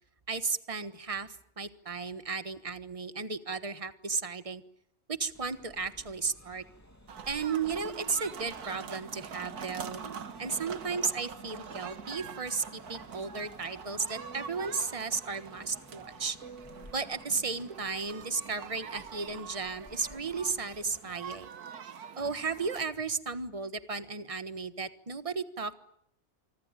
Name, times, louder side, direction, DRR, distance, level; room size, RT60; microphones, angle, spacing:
voice 1, 0.3-4.6 5.1-6.6 7.3-10.0 10.4-16.4 16.9-21.5 22.2-25.8, right 4 dB, 25° right, 11 dB, 1.3 m, -34 dB
sound 1, 5.3-21.0, left 1 dB, 10° left, 2.4 m, -55 dB
sound 2, 7.1-22.8, right 7 dB, 85° right, 1.8 m, -45 dB
sound 3, 14.1-19.5, right 4 dB, 60° right, 2.7 m, -53 dB
26.5 x 25.0 x 9.1 m, 0.75 s
omnidirectional pair, 1.6 m